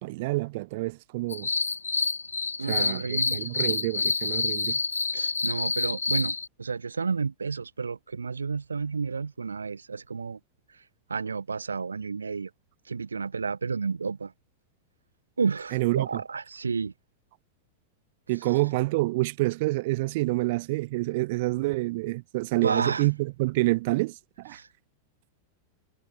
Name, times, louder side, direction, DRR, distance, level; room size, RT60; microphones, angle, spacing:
voice 1, 0.0-1.5 2.7-4.8 15.7-16.2 18.3-24.6, right 21 dB, 50° right, 4.0 m, -27 dB
sound 1, 1.3-6.5, left 4 dB, 75° left, 1.0 m, -28 dB
voice 2, 2.6-3.4 5.1-10.4 11.1-12.5 12.9-14.3 15.4-16.9 22.6-23.1 24.5-24.7, right 5 dB, 75° right, 4.0 m, -31 dB
figure-of-eight pair, 90°, 0 cm